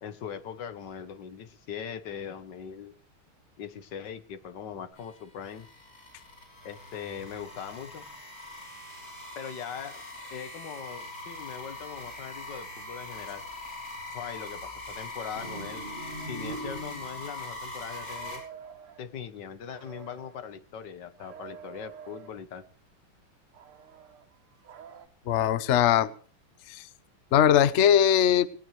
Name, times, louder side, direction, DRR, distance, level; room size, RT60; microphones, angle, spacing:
voice 1, 0.0-2.9 3.6-5.7 6.6-8.0 9.4-10.0 10.3-13.4 14.1-15.8 16.2-18.4 19.0-22.6, left 8 dB, 60° left, 13 dB, 1.7 m, -40 dB
sound 1, 5.0-18.4, left 2 dB, 40° left, 6.2 m, -42 dB
sound 2, 15.4-17.4, right 1 dB, 25° right, 2.6 m, -40 dB
sound 3, 18.1-19.0 19.6-20.5 21.2-22.4 23.5-25.1, right 8 dB, 90° right, 2.6 m, -48 dB
voice 2, 25.3-26.1 26.7-26.8 27.3-28.5, left 9 dB, 85° left, 16 dB, 0.6 m, -21 dB
18.5 x 18.5 x 3.3 m, 0.42 s
omnidirectional pair, 2.3 m